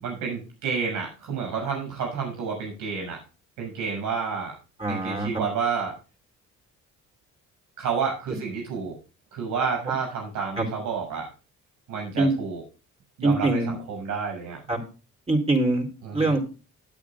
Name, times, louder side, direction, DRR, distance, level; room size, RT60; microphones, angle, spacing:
voice 1, 0.0-3.2 3.6-4.6 4.9-5.9 7.8-9.0 9.3-11.3 11.9-12.6 13.2-14.6 16.0-16.4, right 6 dB, 85° right, 0 dB, 7.0 m, -30 dB
voice 2, 4.8-5.3 10.6-10.7 12.2-12.3 13.2-13.7 14.7-14.8 15.3-15.9 16.1-16.4, right 2 dB, 20° right, 2 dB, 4.1 m, -23 dB
19.5 x 9.0 x 2.5 m, 0.32 s
cardioid pair, 90°, 30 cm